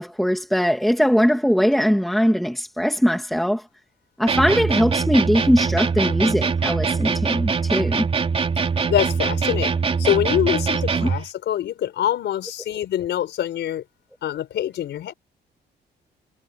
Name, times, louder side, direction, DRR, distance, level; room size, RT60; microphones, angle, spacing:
voice 1, 0.0-3.6 4.2-8.1, equal, ahead, 2.3 m, -20 dB
sound 1, 4.3-11.3, right 5 dB, 35° right, 3.7 m, -23 dB
voice 2, 8.9-13.8 14.2-15.1, left 11 dB, 80° left, 4.6 m, -24 dB
cardioid pair, 145°, 18 cm